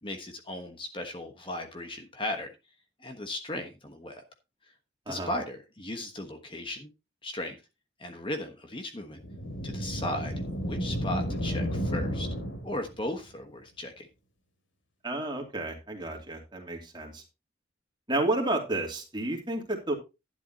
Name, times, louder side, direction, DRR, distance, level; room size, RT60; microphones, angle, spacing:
voice 1, 0.0-2.5 3.0-4.2 5.1-6.9 7.2-7.6 8.0-9.2 9.6-12.3 12.6-14.1, left 1 dB, 25° left, 5 dB, 1.3 m, -36 dB
sound 1, 9.2-13.0, equal, 80° left, 3.1 m, -32 dB
voice 2, 15.0-17.2 18.1-19.9, right 2 dB, 25° right, 1 dB, 2.8 m, -31 dB
12.0 x 10.0 x 2.9 m, 0.26 s
head